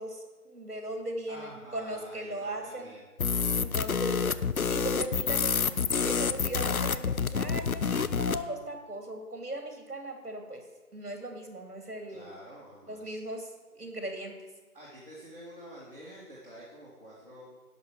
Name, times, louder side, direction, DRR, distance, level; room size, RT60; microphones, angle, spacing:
voice 1, 0.0-2.9 3.5-4.3 4.7-5.7 6.0-10.6 10.9-12.3 12.9-13.5 13.7-14.4, right 1 dB, 70° right, 4 dB, 2.5 m, -38 dB
voice 2, 1.3-3.0 12.1-13.1 14.7-17.6, equal, 35° right, -8 dB, 2.3 m, -48 dB
sound 1, 3.2-8.4, left 6 dB, 65° left, 0.6 m, -28 dB
11.0 x 5.4 x 7.4 m, 1.2 s
figure-of-eight pair, 175°, 47 cm